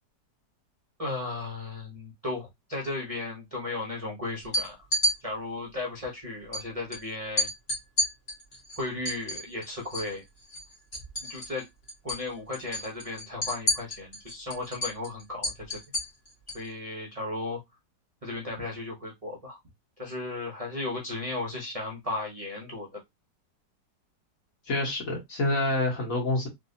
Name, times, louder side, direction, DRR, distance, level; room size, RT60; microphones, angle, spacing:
voice 1, 1.0-4.7 5.2-7.5 8.8-10.2 11.2-11.7 12.0-15.8 16.5-17.6 18.2-19.6 20.0-22.9, left 2 dB, 35° right, 0.6 m, -35 dB
sound 1, 4.4-5.1 6.5-6.6 6.9-7.0 7.4-10.1 10.4-11.6 11.9-12.2 12.5-16.7, equal, 35° left, 1.4 m, -30 dB
voice 2, 24.7-26.5, left 2 dB, 55° left, 1.6 m, -27 dB
3.3 x 2.6 x 2.7 m
omnidirectional pair, 1.9 m